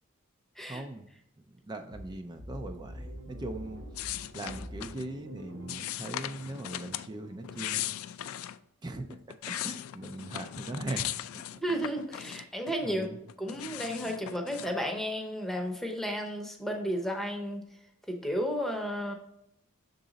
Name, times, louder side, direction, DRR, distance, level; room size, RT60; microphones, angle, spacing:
voice 1, 0.6-1.1 1.7-7.9 8.8-11.4 12.8-13.2, right 2 dB, 20° right, 6 dB, 0.3 m, -40 dB
sound 1, 1.9-7.6, equal, 65° right, 1.4 m, -46 dB
sound 2, 3.9-5.1 5.7-7.1 7.4-8.6 9.1-12.7 13.0-14.8, left 12 dB, 80° left, 0.3 m, -38 dB
voice 2, 11.6-13.1 13.4-17.6 18.1-19.1, equal, ahead, 2 dB, 0.7 m, -33 dB
6.5 x 4.0 x 3.8 m, 0.77 s
head